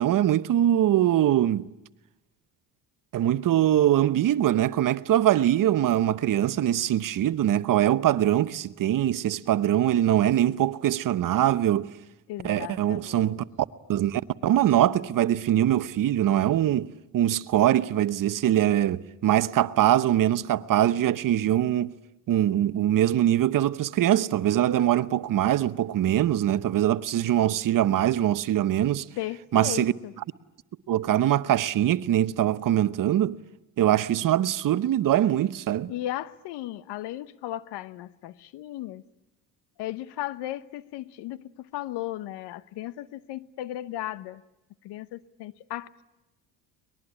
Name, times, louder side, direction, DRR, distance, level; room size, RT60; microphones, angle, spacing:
voice 1, 0.0-1.7 3.1-11.9 12.4-13.4 13.9-21.9 22.3-29.1 29.5-29.9 30.9-33.4 33.8-35.9, right 12 dB, 50° right, 0.9 m, -23 dB
voice 2, 12.3-13.4 29.2-30.1 35.9-39.0 39.8-44.4 44.8-46.0, left 14 dB, 70° left, 1.0 m, -36 dB
23.5 x 20.5 x 9.9 m
supercardioid pair, 85°, 42 cm